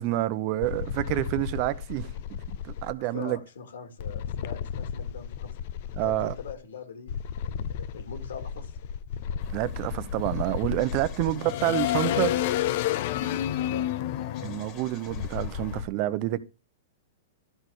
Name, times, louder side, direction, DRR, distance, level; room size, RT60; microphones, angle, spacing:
voice 1, 0.0-2.1 2.8-3.4 6.0-6.3 9.5-12.3 14.4-16.4, right 16 dB, 45° right, 0.8 m, -28 dB
sound 1, 0.6-2.9 4.0-6.5 7.1-15.9, left 10 dB, 55° left, 0.6 m, -31 dB
voice 2, 3.0-5.6 6.0-7.2 7.4-8.7 11.2-11.3 13.6-13.9, left 6 dB, 85° left, 2.4 m, -42 dB
sound 2, 9.4-15.8, left 7 dB, 35° left, 1.9 m, -49 dB
12.5 x 4.2 x 6.6 m
hypercardioid pair, 135°, 0 cm